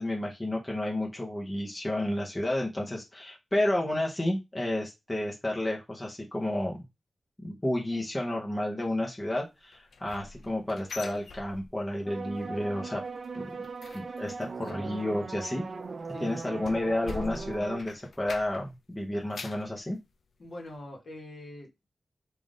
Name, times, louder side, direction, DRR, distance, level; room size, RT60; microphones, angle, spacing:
voice 1, 0.0-6.8 7.4-13.0 13.3-13.5 13.9-15.6 16.2-20.0, left 1 dB, 15° left, 0.8 m, -31 dB
sound 1, 9.7-12.1 12.3-12.7 13.0-18.8 19.1-19.7 20.2-20.3 20.7-20.8, left 4 dB, 75° left, 0.4 m, -45 dB
sound 2, 12.1-17.8, right 4 dB, 55° right, 0.4 m, -39 dB
voice 2, 16.1-16.8 20.4-21.9, left 1 dB, 50° left, 1.1 m, -44 dB
3.5 x 2.5 x 3.7 m
wide cardioid pair, 130°, 0 cm